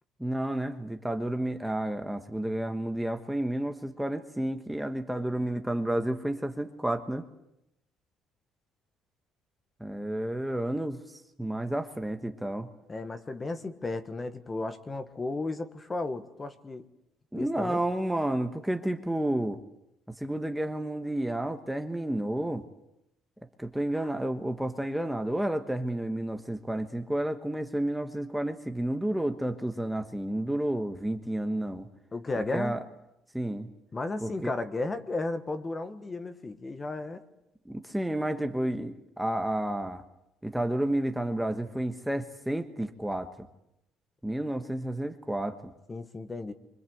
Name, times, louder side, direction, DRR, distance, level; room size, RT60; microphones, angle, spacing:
voice 1, 0.2-7.3 9.8-12.7 17.3-19.6 20.1-22.7 23.6-31.9 32.5-32.8 33.3-33.7 34.2-34.5 37.6-40.0 40.4-43.3 44.2-45.7, right 1 dB, 5° right, 6 dB, 1.3 m, -31 dB
voice 2, 12.9-16.9 17.3-17.8 24.0-24.1 32.1-32.8 33.9-37.2 45.9-46.5, left 2 dB, 20° left, 9 dB, 1.4 m, -34 dB
27.5 x 25.5 x 7.9 m, 0.84 s
cardioid pair, 150°, 0 cm